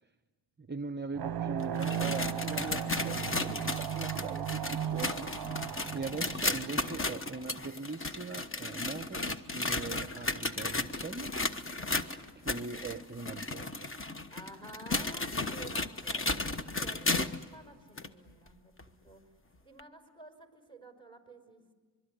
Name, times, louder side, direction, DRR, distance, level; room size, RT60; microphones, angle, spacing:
voice 1, 0.6-5.6 5.9-11.3 12.4-13.9, right 4 dB, 25° right, 10 dB, 0.7 m, -41 dB
sound 1, 1.1-7.3, right 9 dB, 55° right, 0.8 m, -36 dB
sound 2, 1.6-17.5 18.0-18.1 18.8-18.9 19.8-19.9, left 2 dB, 30° left, 1.2 m, -34 dB
voice 2, 5.7-6.3 11.6-12.1 14.3-16.3 16.7-19.2 19.6-21.7, right 2 dB, 10° left, 5 dB, 5.5 m, -52 dB
25.0 x 23.5 x 9.8 m, 1.4 s
wide cardioid pair, 95°, 45 cm